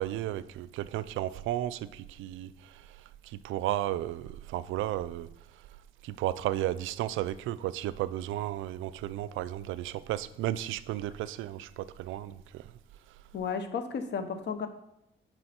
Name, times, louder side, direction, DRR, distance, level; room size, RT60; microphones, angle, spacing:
voice 1, 0.0-2.9 3.2-5.3 6.0-12.6, right 13 dB, 85° right, 0.4 m, -34 dB
voice 2, 13.3-14.7, left 6 dB, 60° left, 1.0 m, -33 dB
9.7 x 4.8 x 4.4 m
cardioid pair, 90°, 20 cm